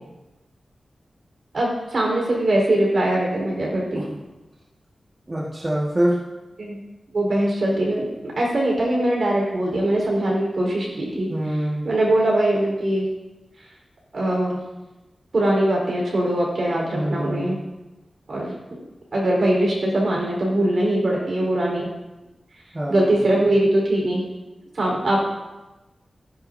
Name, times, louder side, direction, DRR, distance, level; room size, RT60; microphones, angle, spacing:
voice 1, 1.5-4.0 6.6-6.8 7.1-11.3 11.8-13.1 14.1-14.6 15.3-17.6 18.3-18.5 19.1-21.9 22.9-24.2 24.7-25.3, right 1 dB, 60° right, -2 dB, 4.2 m, -21 dB
voice 2, 5.3-6.2 11.3-11.9 16.9-17.7 22.7-23.2, right 1 dB, 25° right, -6 dB, 1.7 m, -25 dB
15.5 x 10.5 x 2.7 m, 1.1 s
wide cardioid pair, 100°, 0 cm